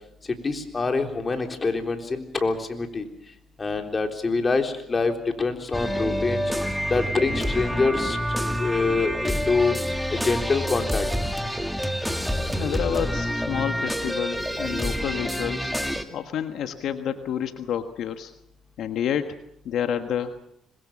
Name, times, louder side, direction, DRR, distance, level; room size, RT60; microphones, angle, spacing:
voice 1, 0.4-3.1 3.6-6.4 6.9-8.2 8.6-9.7 10.1-11.1, left 4 dB, 30° left, 5 dB, 3.6 m, -25 dB
sound 1, 5.7-16.0, equal, ahead, 2.3 m, -27 dB
voice 2, 12.5-15.7 16.1-18.3 18.8-19.4 19.6-20.3, left 9 dB, 75° left, 8 dB, 1.4 m, -29 dB
26.0 x 21.5 x 7.3 m, 0.74 s
cardioid pair, 90°, 0 cm